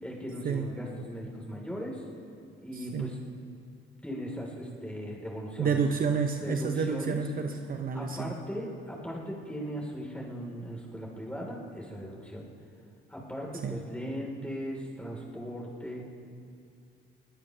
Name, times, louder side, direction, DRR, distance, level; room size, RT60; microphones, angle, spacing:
voice 1, 0.0-2.0 2.6-3.2 4.0-5.8 6.4-7.2 7.9-12.5 13.1-16.0, equal, 5° left, -2 dB, 4.1 m, -38 dB
voice 2, 2.7-3.1 5.6-8.3 13.6-13.8, right 5 dB, 45° right, 5 dB, 0.9 m, -30 dB
22.0 x 18.5 x 3.4 m, 2.5 s
cardioid pair, 90°, 20 cm